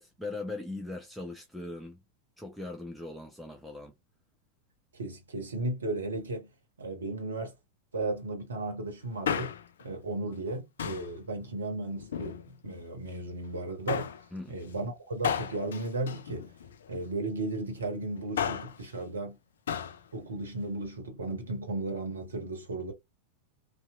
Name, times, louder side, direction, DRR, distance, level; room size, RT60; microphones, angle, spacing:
voice 1, 0.0-2.0 2.4-3.9 14.3-14.6, left 2 dB, ahead, 0.5 m, -40 dB
voice 2, 4.9-6.5 6.8-7.5 7.9-9.5 9.8-14.1 14.5-16.5 16.9-19.4 20.1-22.9, right 2 dB, 70° right, 0.7 m, -35 dB
Male speech man speaking, 9.0-9.8 10.8-11.2 12.0-12.8 13.9-14.2 15.2-16.9 18.1-18.8 19.7-20.0 20.3-20.4, left 8 dB, 65° left, 0.3 m, -34 dB
2.7 x 2.3 x 2.3 m
figure-of-eight pair, 90°, 0 cm